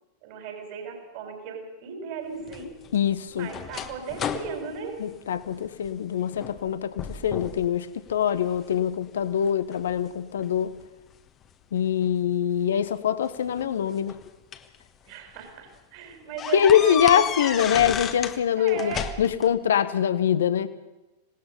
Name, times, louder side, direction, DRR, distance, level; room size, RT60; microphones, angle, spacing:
voice 1, 0.2-2.8 3.3-5.0 8.3-8.6 15.1-17.7 18.0-18.1 18.5-19.1, right 6 dB, 45° right, 4 dB, 4.8 m, -37 dB
sound 1, 2.5-5.9 6.3-6.7 7.0-7.7 8.1-8.8 9.4-10.9 12.0-12.1 13.3-14.8 15.3-15.4 15.7-15.8 16.4-18.4 18.7-19.5, left 8 dB, 30° left, 1.3 m, -33 dB
voice 2, 2.9-3.5 5.0-10.7 11.7-14.2 16.5-20.7, left 9 dB, 65° left, 13 dB, 0.9 m, -24 dB
26.5 x 18.5 x 5.4 m, 1.0 s
figure-of-eight pair, 90°, 0 cm